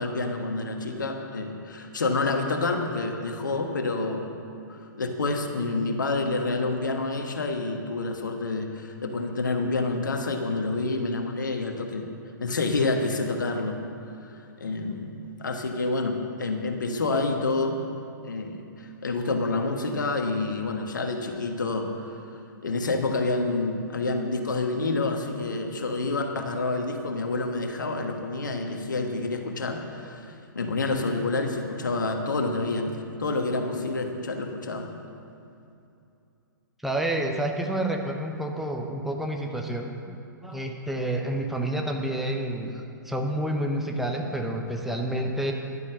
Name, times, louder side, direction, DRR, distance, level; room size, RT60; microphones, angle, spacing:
voice 1, 0.0-4.3 4.7-12.1 12.4-13.8 14.2-17.8 18.2-22.0 22.6-34.9, left 3 dB, 65° left, 4 dB, 1.5 m, -28 dB
voice 2, 36.8-40.2 40.4-42.7 43.0-45.5, right 1 dB, ahead, 1 dB, 0.8 m, -29 dB
11.5 x 9.8 x 6.4 m, 2.6 s
figure-of-eight pair, 115°, 11 cm